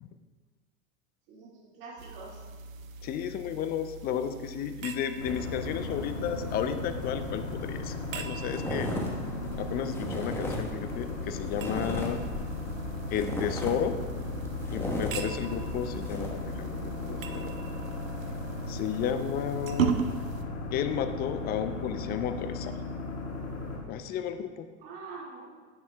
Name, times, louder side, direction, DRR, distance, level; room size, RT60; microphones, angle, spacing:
voice 1, 1.3-2.4 19.8-20.1 24.8-25.7, right 4 dB, 50° right, -5 dB, 2.1 m, -45 dB
sound 1, 2.0-20.4, right 6 dB, 80° right, 0.7 m, -39 dB
voice 2, 3.0-8.9 9.6-12.2 13.1-14.0 14.7-17.5 18.7-19.9 20.7-22.8 23.9-24.7, left 8 dB, 25° left, 9 dB, 0.4 m, -33 dB
sound 2, 5.2-23.8, left 2 dB, 55° left, 2.0 m, -36 dB
sound 3, 7.5-7.6 7.8-8.1 8.5-16.3, left 1 dB, 5° left, 1.1 m, -36 dB
10.5 x 8.8 x 2.2 m, 1.4 s
hypercardioid pair, 95°, 40 cm